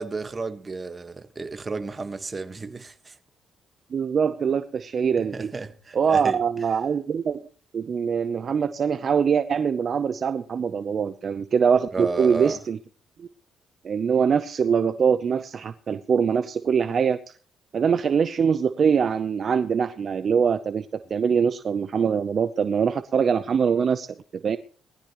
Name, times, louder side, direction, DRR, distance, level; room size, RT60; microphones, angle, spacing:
voice 1, 0.0-3.1 5.2-6.4 11.9-12.6, right 3 dB, 30° right, 1.4 m, -32 dB
voice 2, 3.9-5.5 5.9-7.5 7.7-12.8 13.2-13.3 13.8-17.2 17.7-24.1 24.4-24.6, right 6 dB, 50° right, 0.7 m, -23 dB
20.5 x 15.0 x 3.1 m
cardioid pair, 90°, 0 cm